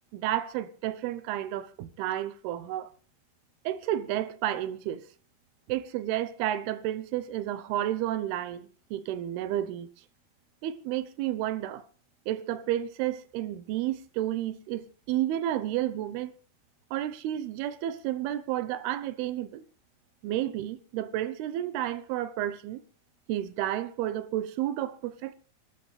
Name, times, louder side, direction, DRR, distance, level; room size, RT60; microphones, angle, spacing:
voice 1, 0.1-2.9 3.7-5.1 5.7-9.9 10.6-11.8 12.3-16.3 16.9-19.6 20.2-22.8 23.3-25.3, right 12 dB, 80° right, 2.8 m, -31 dB
28.0 x 12.0 x 3.3 m
omnidirectional pair, 4.6 m